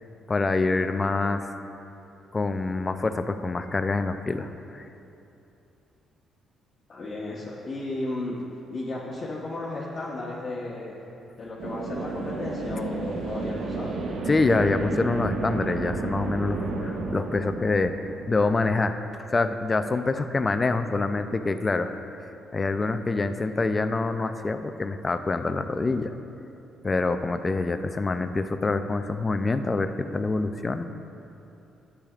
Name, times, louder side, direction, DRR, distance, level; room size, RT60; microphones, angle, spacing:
voice 1, 0.3-1.5 2.3-4.9 14.3-21.9 22.2-26.1 26.8-30.9, left 3 dB, 25° left, 8 dB, 0.4 m, -26 dB
voice 2, 6.9-8.4 8.7-11.1 11.4-14.0, left 2 dB, 45° left, -7 dB, 1.2 m, -34 dB
sound 1, 11.6-19.1, right 3 dB, 75° right, 0.8 m, -32 dB
12.0 x 8.4 x 2.4 m, 2.8 s
cardioid pair, 90°, 0 cm